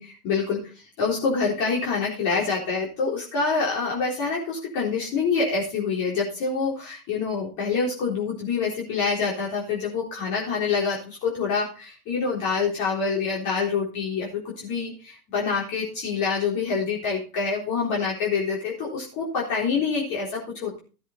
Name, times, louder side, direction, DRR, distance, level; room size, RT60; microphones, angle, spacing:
voice 1, 0.0-20.8, left 5 dB, 40° left, -3 dB, 4.0 m, -26 dB
14.0 x 7.7 x 3.9 m, 0.34 s
hypercardioid pair, 105°, 45 cm